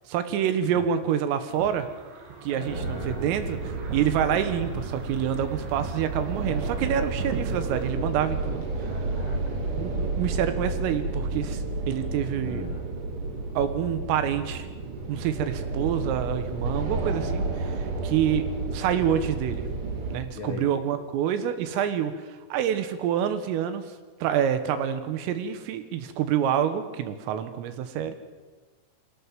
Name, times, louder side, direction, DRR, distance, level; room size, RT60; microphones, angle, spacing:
voice 1, 0.1-1.9 2.4-3.6 3.9-8.6 9.7-11.6 11.9-12.7 13.6-14.7 15.1-18.5 18.7-19.7 20.1-23.8 24.2-28.2, right 9 dB, 85° right, 9 dB, 4.0 m, -27 dB
sound 1, 1.5-7.9, right 6 dB, 70° right, 5.0 m, -42 dB
voice 2, 2.4-3.3 8.8-9.6 12.4-12.9 20.3-20.8, left 5 dB, 75° left, 1 dB, 1.2 m, -40 dB
sound 2, 2.7-20.2, right 3 dB, 45° right, 1.9 m, -31 dB
24.0 x 17.0 x 7.5 m, 1.3 s
omnidirectional pair, 5.8 m